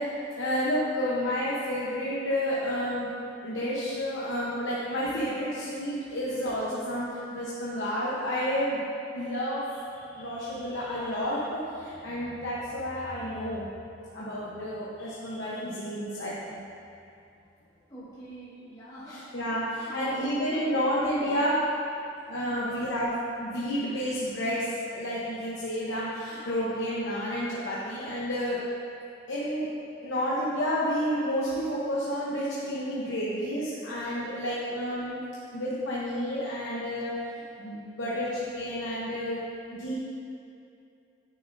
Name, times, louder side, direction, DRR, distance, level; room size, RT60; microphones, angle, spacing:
voice 1, 0.0-3.1 3.4-8.8 9.1-13.7 14.1-16.6 19.1-21.6 22.3-28.6 29.3-29.7 30.0-35.2 35.5-37.2 37.6-39.4 39.7-39.9, equal, 70° left, -8 dB, 1.0 m, -30 dB
voice 2, 17.9-19.3 19.8-21.4 22.4-22.7, equal, 20° left, -12 dB, 1.7 m, -40 dB
9.5 x 6.8 x 2.7 m, 2.6 s
head